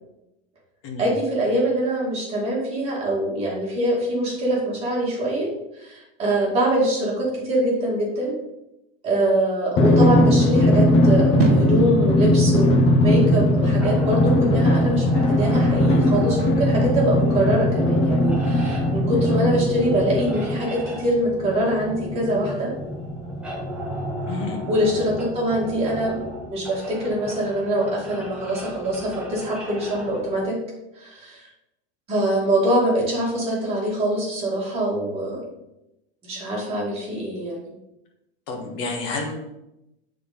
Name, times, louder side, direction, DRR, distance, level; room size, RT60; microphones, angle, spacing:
voice 1, 1.0-5.5 5.8-8.4 9.0-22.7 24.7-26.2 26.5-30.6 31.0-31.5 32.1-35.4 36.2-37.6, right 1 dB, 20° right, -5 dB, 2.1 m, -24 dB
Drum, 9.8-20.8, left 1 dB, 20° left, 0.5 m, -19 dB
sound 1, 11.4-17.6, right 5 dB, 75° right, 1.3 m, -32 dB
sound 2, 13.8-30.4, equal, 5° right, 0.8 m, -34 dB
voice 2, 24.3-24.6 38.5-39.3, left 3 dB, 40° left, 2 dB, 1.4 m, -29 dB
6.8 x 3.9 x 5.2 m, 0.89 s
supercardioid pair, 170°, 30 cm